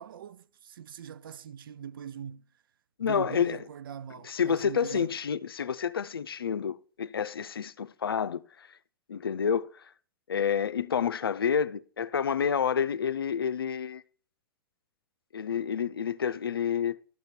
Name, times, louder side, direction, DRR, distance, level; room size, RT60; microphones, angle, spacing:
voice 1, 0.0-2.4 3.0-5.1, right 8 dB, 70° right, 0.5 m, -41 dB
voice 2, 3.0-3.6 4.2-8.7 9.1-9.7 10.3-14.0 15.3-17.0, left 7 dB, 85° left, 0.5 m, -29 dB
12.0 x 6.5 x 4.3 m
hypercardioid pair, 105°, 12 cm